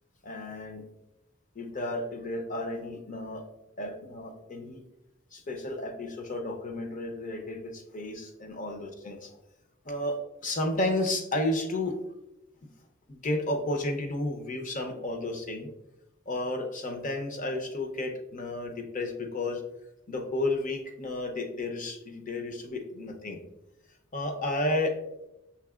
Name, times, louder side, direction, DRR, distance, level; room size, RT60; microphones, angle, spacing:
voice 1, 0.2-0.8 1.6-3.4 3.8-4.8 5.3-9.3 9.8-10.2 10.4-11.9 12.6-12.7 13.1-15.7 16.3-19.6 20.1-23.4 24.1-25.0, left 2 dB, 40° left, 4 dB, 0.7 m, -32 dB
5.9 x 3.6 x 2.4 m, 0.91 s
head